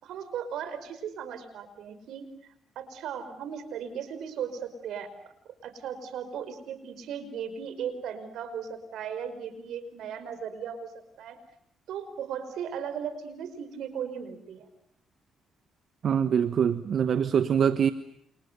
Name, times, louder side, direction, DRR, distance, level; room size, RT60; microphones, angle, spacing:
voice 1, 0.0-5.1 5.6-10.9 11.2-11.4 11.9-14.7, right 7 dB, 80° right, 12 dB, 5.2 m, -37 dB
voice 2, 16.0-17.9, right 8 dB, 60° right, 11 dB, 1.2 m, -24 dB
29.5 x 29.0 x 6.9 m, 0.74 s
cardioid pair, 90°, 0 cm